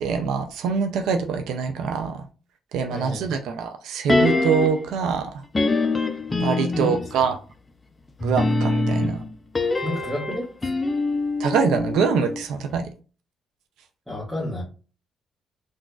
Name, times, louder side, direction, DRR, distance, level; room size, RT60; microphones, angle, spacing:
voice 1, 0.0-2.2 2.7-5.3 6.4-7.4 8.2-9.2 11.4-12.9, right 6 dB, 85° right, 0.4 m, -24 dB
voice 2, 2.9-3.4 6.7-7.3 9.8-10.8 14.1-14.6, left 1 dB, ahead, 1.4 m, -31 dB
sound 1, 4.1-4.9 5.5-7.2 8.2-12.4 12.7-12.8, left 2 dB, 25° left, 0.4 m, -24 dB
3.8 x 2.4 x 2.3 m
cardioid pair, 90°, 0 cm